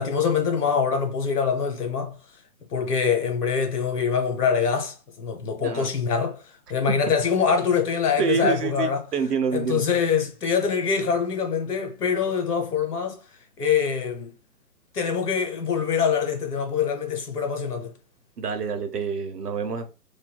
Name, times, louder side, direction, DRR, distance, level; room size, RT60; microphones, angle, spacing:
voice 1, 0.0-2.2 2.7-9.0 9.5-13.2 13.6-14.3 14.9-17.9, left 6 dB, 80° left, 1.2 m, -24 dB
voice 2, 8.2-9.8 18.4-19.9, right 6 dB, 90° right, 1.0 m, -27 dB
3.5 x 2.6 x 2.2 m
hypercardioid pair, 160°, 45 cm